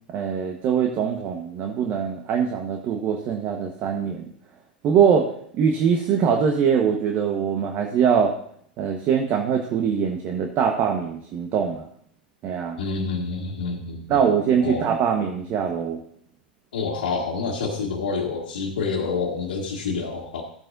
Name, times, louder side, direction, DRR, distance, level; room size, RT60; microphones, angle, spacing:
voice 1, 0.1-4.3 4.8-8.3 8.8-11.9 12.4-12.8 14.1-16.0, right 7 dB, 40° right, 3 dB, 1.2 m, -22 dB
voice 2, 12.8-14.2 14.6-14.8 16.7-20.4, left 4 dB, 75° left, -5 dB, 1.8 m, -28 dB
13.5 x 8.9 x 2.6 m, 0.66 s
hypercardioid pair, 95°, 5 cm